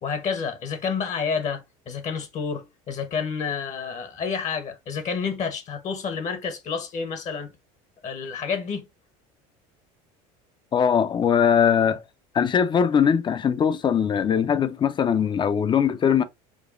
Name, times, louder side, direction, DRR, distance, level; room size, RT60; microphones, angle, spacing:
voice 1, 0.0-7.5 8.0-8.8, left 6 dB, 40° left, 0.9 m, -29 dB
voice 2, 10.7-12.0 12.3-16.2, left 7 dB, 25° left, 0.4 m, -21 dB
5.1 x 2.2 x 2.4 m
supercardioid pair, 100°, 18 cm